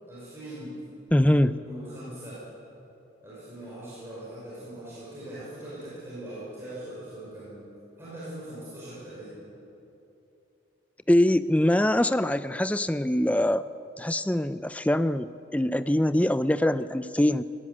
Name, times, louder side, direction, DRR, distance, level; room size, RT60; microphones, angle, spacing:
voice 1, 0.1-0.8 1.6-2.4 3.2-7.6 8.0-9.3, right 1 dB, 15° right, -9 dB, 5.6 m, -41 dB
voice 2, 1.1-1.6 11.1-13.6 14.0-17.4, left 1 dB, 5° left, 13 dB, 0.4 m, -23 dB
18.0 x 16.5 x 9.8 m, 2.8 s
head